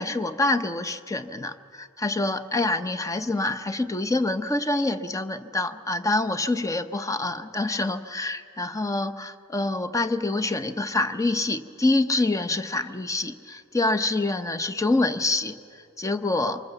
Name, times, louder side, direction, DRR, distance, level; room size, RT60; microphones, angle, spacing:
voice 1, 0.0-15.6 16.0-16.6, left 2 dB, 15° left, 11 dB, 0.7 m, -26 dB
25.0 x 20.5 x 8.0 m, 2.5 s
head